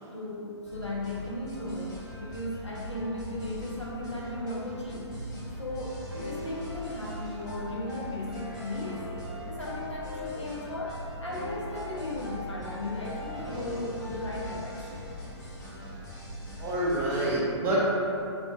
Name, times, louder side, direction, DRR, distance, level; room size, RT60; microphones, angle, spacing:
voice 1, 0.1-5.1 5.6-9.0 9.5-15.1 17.5-17.6, left 1 dB, 80° left, -4 dB, 0.7 m, -36 dB
sound 1, 0.6-17.4, equal, 40° left, 1.2 m, -41 dB
sound 2, 6.1-15.0, left 1 dB, 85° right, 0.9 m, -42 dB
voice 2, 16.6-17.9, right 1 dB, 15° right, -7 dB, 0.6 m, -27 dB
3.5 x 3.4 x 2.4 m, 2.7 s
figure-of-eight pair, 120°, 15 cm